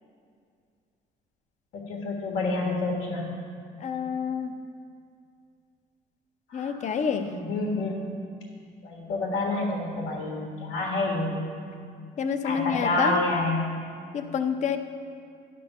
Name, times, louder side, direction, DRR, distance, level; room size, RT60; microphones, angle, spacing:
voice 1, 1.7-3.3 6.5-8.0 8.8-11.5 12.4-13.7, left 2 dB, 85° left, -2 dB, 1.7 m, -28 dB
voice 2, 3.8-4.5 6.5-7.3 12.2-13.2 14.1-14.8, left 7 dB, 45° left, 8 dB, 0.6 m, -28 dB
11.0 x 3.9 x 6.6 m, 2.3 s
cardioid pair, 110°, 17 cm